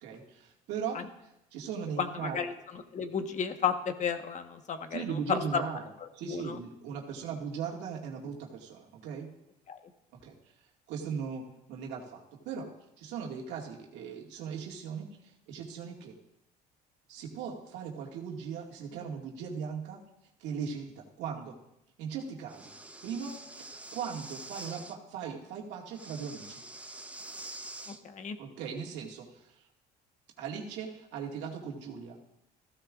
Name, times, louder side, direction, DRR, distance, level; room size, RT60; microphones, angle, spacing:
voice 1, 0.0-2.4 4.9-5.8 6.1-9.3 10.2-10.3 10.9-11.4 11.7-12.7 13.0-15.1 15.5-16.1 17.1-20.0 20.4-21.5 22.0-22.7 23.0-23.4 23.7-26.6 28.4-29.3 30.4-32.2, right 6 dB, 75° right, -1 dB, 2.1 m, -38 dB
voice 2, 2.0-5.6 6.0-6.6 9.7-9.8 27.9-28.4, left 7 dB, 40° left, 7 dB, 1.2 m, -33 dB
Breathing, 22.5-25.0 25.9-28.0, right 2 dB, 5° right, 0.9 m, -45 dB
15.0 x 13.5 x 2.5 m, 0.86 s
supercardioid pair, 90°, 18 cm